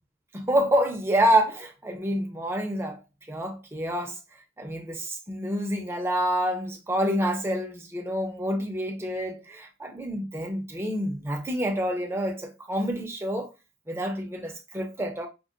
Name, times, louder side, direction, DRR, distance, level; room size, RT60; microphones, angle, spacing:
voice 1, 0.3-3.0 3.3-4.2 4.6-13.5 13.9-15.3, equal, 10° right, 0.6 m, -27 dB
5.2 x 2.1 x 2.4 m
head